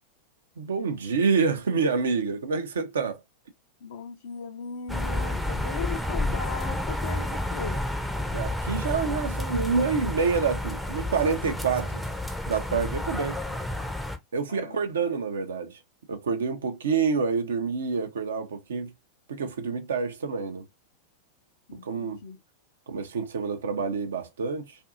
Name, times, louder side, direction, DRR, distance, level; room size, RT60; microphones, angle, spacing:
voice 1, 0.6-3.2 8.3-12.0 12.5-13.4 14.3-15.8 16.1-18.9 19.3-20.6 21.8-22.2 22.9-24.8, right 5 dB, 65° right, 0.6 m, -27 dB
voice 2, 3.8-7.8 14.5-14.8 21.7-22.4, left 6 dB, 60° left, 0.5 m, -38 dB
sound 1, 4.9-14.2, left 1 dB, ahead, 0.5 m, -30 dB
2.6 x 2.6 x 2.4 m
figure-of-eight pair, 90°, 0 cm